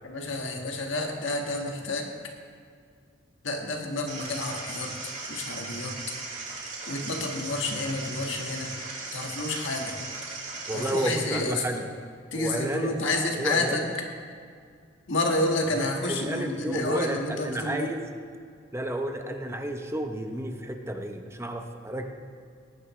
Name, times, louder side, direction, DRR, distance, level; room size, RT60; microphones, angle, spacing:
voice 1, 0.0-2.1 3.4-4.9 5.3-5.9 6.9-8.7 9.1-9.9 10.7-11.8 12.3-13.8 15.1-17.9, left 2 dB, 70° left, 2 dB, 1.6 m, -29 dB
sound 1, 4.1-11.1, right 3 dB, 40° right, 2.4 m, -37 dB
voice 2, 10.7-11.9 12.3-13.9 15.7-18.1 18.7-22.1, right 1 dB, 15° right, 5 dB, 0.7 m, -32 dB
18.5 x 9.2 x 3.2 m, 2.2 s
head